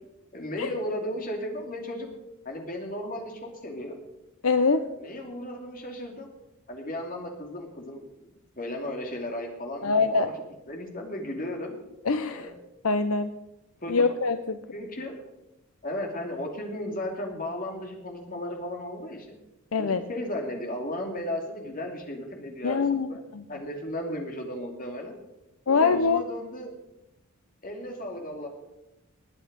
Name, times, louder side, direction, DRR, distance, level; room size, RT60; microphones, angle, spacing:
voice 1, 0.3-2.1 2.4-4.0 4.6-6.3 6.7-10.3 10.7-11.7 12.3-12.5 13.8-14.0 14.7-15.2 15.8-19.4 19.8-23.2 23.5-25.2 25.7-26.7 27.6-28.5, left 1 dB, 40° left, 2 dB, 2.6 m, -35 dB
voice 2, 4.4-4.8 9.8-10.3 12.0-12.5 12.8-13.3 13.9-14.6 19.7-20.0 22.6-23.4 25.7-26.2, left 4 dB, 75° left, 9 dB, 0.7 m, -24 dB
20.5 x 8.5 x 5.3 m, 0.94 s
head